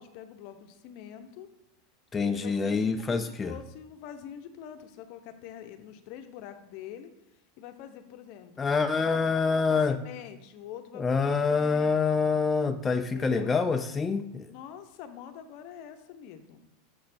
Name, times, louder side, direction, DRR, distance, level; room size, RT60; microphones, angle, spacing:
voice 1, 0.0-1.5 2.2-7.1 7.6-8.6 8.9-12.0 13.1-13.5 14.5-16.6, left 9 dB, 55° left, 9 dB, 0.7 m, -45 dB
voice 2, 2.1-3.5 8.6-10.0 11.0-14.5, left 5 dB, 15° left, 7 dB, 0.3 m, -26 dB
6.8 x 3.2 x 5.8 m, 0.87 s
supercardioid pair, 135°, 0 cm